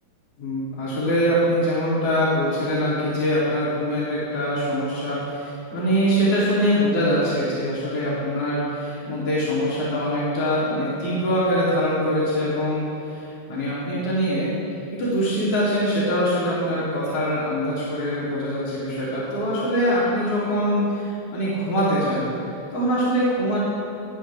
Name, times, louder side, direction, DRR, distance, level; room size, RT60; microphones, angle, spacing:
voice 1, 0.4-14.5 15.0-22.3 22.7-23.6, equal, 50° left, -9 dB, 4.8 m, -23 dB
19.5 x 19.5 x 3.7 m, 2.8 s
omnidirectional pair, 3.4 m